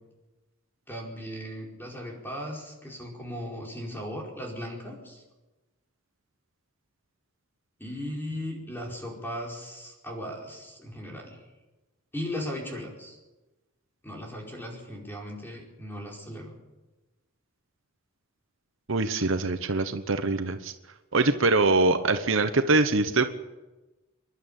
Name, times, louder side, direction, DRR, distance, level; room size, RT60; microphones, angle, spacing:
voice 1, 0.9-5.2 7.8-11.4 12.1-13.2 14.0-16.5, equal, 10° left, -1 dB, 4.9 m, -37 dB
voice 2, 18.9-20.7 21.1-23.3, right 3 dB, 60° right, 9 dB, 1.0 m, -23 dB
27.5 x 11.5 x 8.9 m, 1.1 s
head